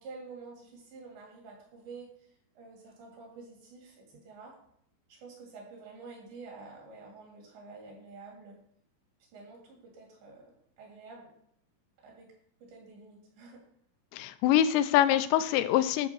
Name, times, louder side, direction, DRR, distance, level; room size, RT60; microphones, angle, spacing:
voice 1, 0.0-4.5 5.1-8.6 9.3-11.3 12.0-12.3 12.6-13.6, right 4 dB, 70° right, -1 dB, 5.1 m, -49 dB
voice 2, 14.1-16.1, left 12 dB, 85° left, 12 dB, 2.8 m, -24 dB
11.0 x 5.1 x 6.9 m, 0.67 s
omnidirectional pair, 5.2 m